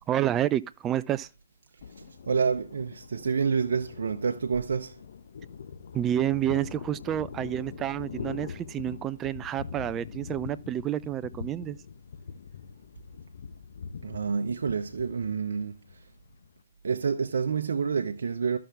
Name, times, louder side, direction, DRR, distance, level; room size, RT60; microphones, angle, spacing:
voice 1, 0.1-1.3 5.9-11.8, right 12 dB, 20° right, 0.4 m, -29 dB
Thunder, 1.8-16.6, left 6 dB, 60° left, 0.9 m, -43 dB
voice 2, 2.0-5.0 14.0-15.8 16.8-18.6, right 5 dB, 70° right, 0.7 m, -28 dB
13.0 x 6.0 x 3.4 m
hypercardioid pair, 140°, 0 cm